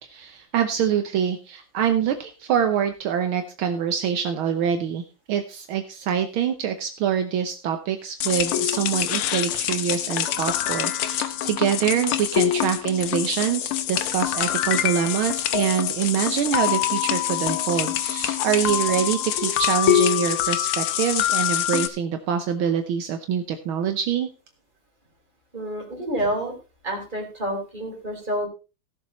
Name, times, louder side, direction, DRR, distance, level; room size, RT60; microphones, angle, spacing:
voice 1, 0.0-5.0 5.3-24.3, right 8 dB, 75° right, 7 dB, 1.7 m, -25 dB
sound 1, 8.2-21.9, left 11 dB, 80° left, 1.8 m, -25 dB
voice 2, 25.5-26.5 26.8-28.5, right 1 dB, 20° right, 0 dB, 3.8 m, -28 dB
16.0 x 7.2 x 4.2 m, 0.31 s
omnidirectional pair, 2.4 m